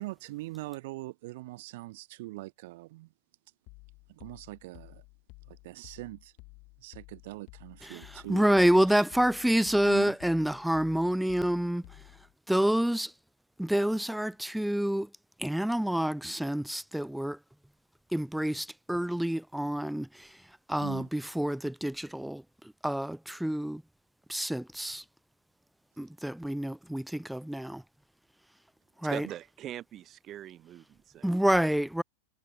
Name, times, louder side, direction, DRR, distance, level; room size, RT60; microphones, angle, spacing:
voice 1, 0.0-3.1 4.1-5.0 5.5-6.3 6.8-9.0 9.8-10.2 20.8-21.1, right 20 dB, 50° right, 3.7 m, -42 dB
sound 1, 3.7-12.3, left 27 dB, 40° left, 1.6 m, -53 dB
voice 2, 7.8-11.8 12.5-13.1 13.6-15.1 15.4-17.4 18.1-20.3 20.7-22.4 22.8-23.8 24.3-25.0 26.0-27.8 29.0-29.3 31.2-32.0, right 1 dB, ahead, 0.3 m, -28 dB
voice 3, 29.1-31.4, right 12 dB, 30° right, 1.1 m, -42 dB
figure-of-eight pair, 90°, 0 cm